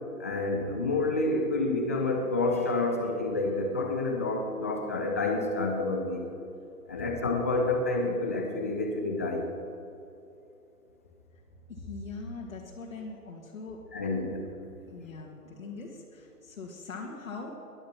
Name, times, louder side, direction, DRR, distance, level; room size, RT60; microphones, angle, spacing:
voice 1, 0.2-6.2 6.9-9.5 13.9-14.5, left 2 dB, 10° left, 2 dB, 0.5 m, -29 dB
voice 2, 11.7-14.3 14.9-17.5, left 3 dB, 55° left, -2 dB, 2.3 m, -42 dB
19.0 x 12.0 x 5.9 m, 2.8 s
figure-of-eight pair, 135°, 47 cm